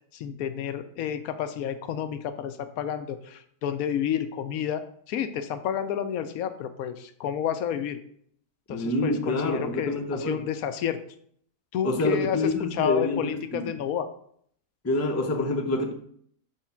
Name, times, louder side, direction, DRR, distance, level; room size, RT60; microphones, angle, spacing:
voice 1, 0.1-8.0 8.7-11.0 11.7-14.1, left 8 dB, 75° left, 9 dB, 1.0 m, -30 dB
voice 2, 8.7-10.4 11.8-13.7 14.8-15.9, left 2 dB, 15° left, 2 dB, 0.5 m, -27 dB
6.5 x 3.5 x 5.6 m, 0.64 s
omnidirectional pair, 1.5 m